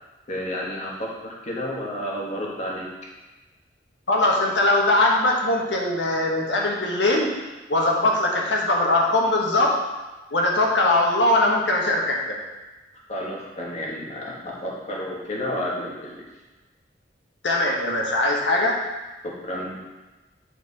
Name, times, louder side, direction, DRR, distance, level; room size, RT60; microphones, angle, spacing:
voice 1, 0.3-2.9 13.1-16.2 18.6-18.7 19.2-19.8, equal, 40° left, -3 dB, 1.5 m, -31 dB
voice 2, 4.1-7.3 7.7-9.8 10.3-12.4 17.4-18.8, left 2 dB, 75° left, -1 dB, 1.4 m, -21 dB
8.9 x 4.6 x 4.2 m, 1.2 s
head